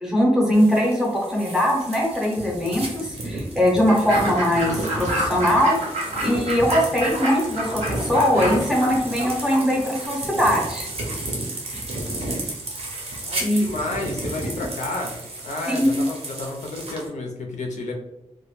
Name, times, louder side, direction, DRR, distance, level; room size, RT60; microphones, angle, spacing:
voice 1, 0.0-5.8 6.2-10.9 13.4-13.7 14.6-14.7 15.7-16.1, equal, 5° right, -2 dB, 0.6 m, -21 dB
sound 1, 0.5-17.1, right 2 dB, 55° right, 0.6 m, -32 dB
Fowl / Bird, 3.9-10.1, right 1 dB, 90° right, 0.9 m, -30 dB
voice 2, 13.2-15.1 15.4-17.9, left 2 dB, 90° left, 2 dB, 0.5 m, -31 dB
2.1 x 2.0 x 3.0 m, 0.89 s
wide cardioid pair, 140°, 12 cm